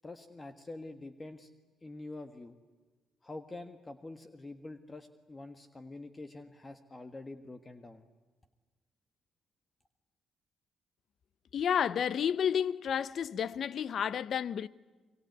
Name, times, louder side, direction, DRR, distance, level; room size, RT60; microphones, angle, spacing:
voice 1, 0.0-1.5 1.8-2.6 3.2-8.1, left 2 dB, 20° left, 1.6 m, -46 dB
voice 2, 11.5-14.7, left 8 dB, 60° left, 0.8 m, -31 dB
26.0 x 23.5 x 9.5 m
cardioid pair, 90°, 0 cm